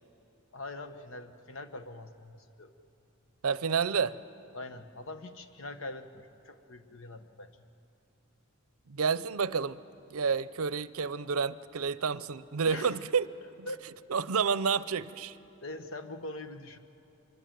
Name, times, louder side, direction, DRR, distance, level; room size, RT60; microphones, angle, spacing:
voice 1, 0.5-2.7 4.5-7.5 12.7-13.0 13.6-13.8 15.6-16.8, left 2 dB, 65° left, 9 dB, 1.2 m, -43 dB
voice 2, 3.4-4.2 8.9-9.8 10.1-13.3 13.6-13.7 14.1-15.4, right 5 dB, 85° right, 17 dB, 0.6 m, -29 dB
25.5 x 23.0 x 9.3 m, 3.0 s
head